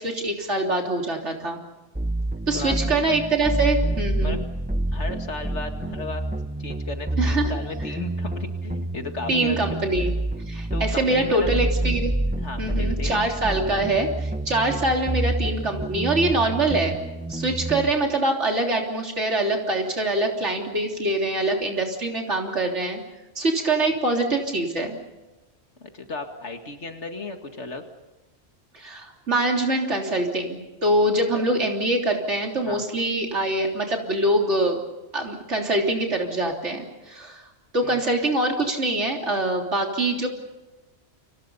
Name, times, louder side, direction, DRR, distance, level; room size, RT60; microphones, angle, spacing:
voice 1, 0.0-1.6 2.5-4.4 7.2-7.5 9.3-10.1 10.5-12.1 12.6-17.0 17.3-23.0 23.4-25.0 28.7-34.8 35.1-37.4 37.7-40.3, right 2 dB, 80° right, 1 dB, 3.7 m, -24 dB
sound 1, 1.9-17.9, right 1 dB, 10° right, 0.9 m, -28 dB
voice 2, 2.5-3.0 4.2-4.4 4.9-6.2 6.6-9.9 10.7-11.5 12.4-13.2 25.8-27.8 31.3-31.4 32.7-32.9 37.8-38.0, left 3 dB, 75° left, 5 dB, 2.5 m, -35 dB
30.0 x 26.5 x 5.6 m, 1.1 s
omnidirectional pair, 1.2 m